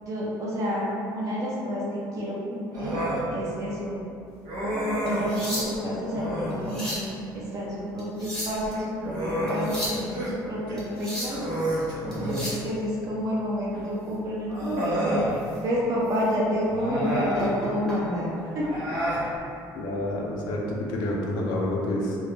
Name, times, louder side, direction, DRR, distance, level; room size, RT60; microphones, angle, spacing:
voice 1, 0.0-3.0 3.3-4.0 5.0-11.4 12.0-18.8, equal, 45° right, -6 dB, 0.6 m, -29 dB
Human voice, 2.7-3.2 4.5-5.4 6.1-6.6 8.6-10.3 10.7-10.8 11.3-12.5 13.7-13.8 14.5-15.3 16.7-17.5 18.6-19.2, equal, 85° right, 0.7 m, -29 dB
sound 1, 5.1-6.0 6.5-7.1 8.0-8.7 9.5-10.0 10.8-11.4 12.1-12.7 14.7-14.9 15.4-15.6 16.1-16.2 17.4-18.0 19.1-19.3, equal, 5° left, 0.7 m, -34 dB
voice 2, 19.7-22.2, left 1 dB, 85° left, -2 dB, 0.5 m, -28 dB
2.2 x 2.0 x 3.2 m, 2.6 s
cardioid pair, 150°, 8 cm